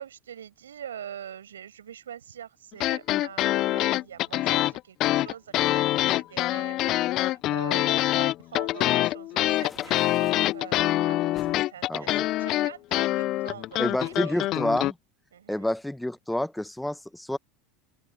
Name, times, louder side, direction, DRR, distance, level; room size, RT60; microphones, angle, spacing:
voice 1, 0.0-14.5 15.3-15.7, right 9 dB, 90° right, 6.9 m, -44 dB
sound 1, 2.7-14.9, left 16 dB, 50° left, 0.4 m, -25 dB
sound 2, 9.4-10.5 11.4-11.6 12.3-13.3, left 5 dB, 25° left, 2.4 m, -49 dB
voice 2, 11.9-12.3 13.8-15.0 15.5-17.4, left 1 dB, 5° left, 0.9 m, -29 dB
open air
hypercardioid pair, 85°, 0 cm